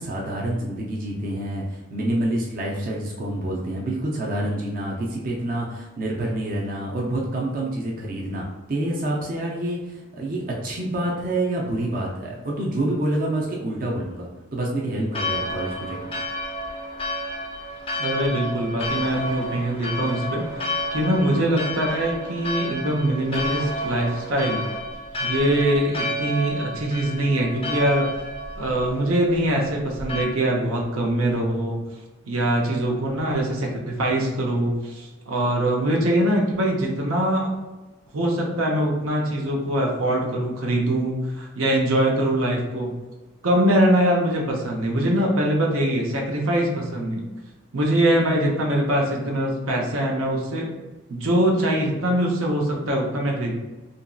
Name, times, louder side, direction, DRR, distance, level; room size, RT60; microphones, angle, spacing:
voice 1, 0.0-16.2, right 1 dB, 40° right, -3 dB, 0.4 m, -27 dB
Church bell, 15.1-30.2, left 1 dB, 25° left, 0.4 m, -31 dB
voice 2, 18.0-20.7 20.9-24.6 25.2-28.1 28.5-31.8 32.3-37.5 38.1-43.0 43.4-47.2 47.7-50.7 51.1-53.5, right 1 dB, 90° right, -1 dB, 0.7 m, -23 dB
2.9 x 2.6 x 2.3 m, 1.1 s
head